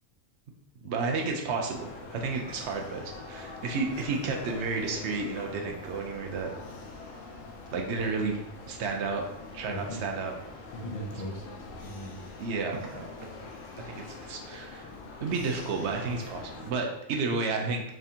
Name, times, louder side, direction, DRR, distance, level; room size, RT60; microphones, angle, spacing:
voice 1, 0.8-6.5 7.7-8.4 8.7-9.2 9.5-10.3 12.4-13.1 13.9-14.9 15.2-17.8, right 4 dB, 65° right, 2 dB, 0.9 m, -31 dB
sound 1, 1.7-16.7, left 3 dB, 80° left, 1.0 m, -44 dB
voice 2, 9.6-10.0 10.7-12.3 12.7-13.1, equal, 55° left, -2 dB, 0.4 m, -39 dB
3.6 x 3.3 x 2.8 m, 0.85 s
omnidirectional pair, 1.4 m